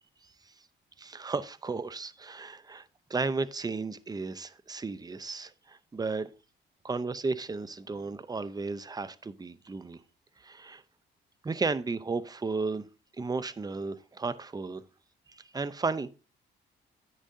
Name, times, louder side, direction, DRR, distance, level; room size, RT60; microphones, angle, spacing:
voice 1, 1.0-6.3 6.8-10.0 10.4-10.8 11.4-12.9 13.2-14.8 15.3-16.1, right 4 dB, 20° right, 0.6 m, -34 dB
10.5 x 8.7 x 2.7 m
cardioid pair, 90°, 20 cm